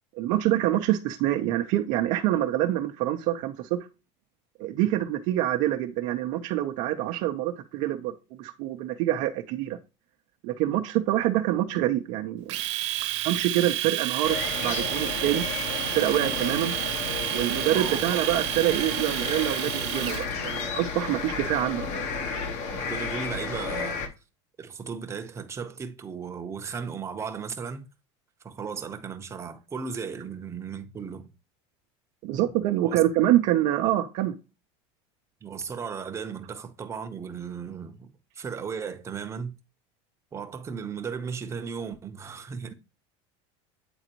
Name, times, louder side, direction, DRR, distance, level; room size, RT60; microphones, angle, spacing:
voice 1, 0.2-3.8 4.6-8.1 8.4-9.8 10.4-12.6 13.2-14.4 14.6-15.4 15.9-16.7 17.3-22.0 32.2-34.3, right 13 dB, 55° right, 0.7 m, -26 dB
Domestic sounds home sounds, 12.5-20.3, right 14 dB, 85° right, 0.9 m, -30 dB
sound 1, 14.2-24.1, left 5 dB, 50° left, 1.4 m, -32 dB
voice 2, 17.7-18.1 19.8-20.0 20.3-20.4 22.7-24.0 24.6-27.9 28.4-31.3 32.8-33.0 35.4-39.6 40.3-42.7, right 6 dB, 20° right, 0.9 m, -36 dB
8.8 x 3.9 x 3.0 m
supercardioid pair, 145°, 15 cm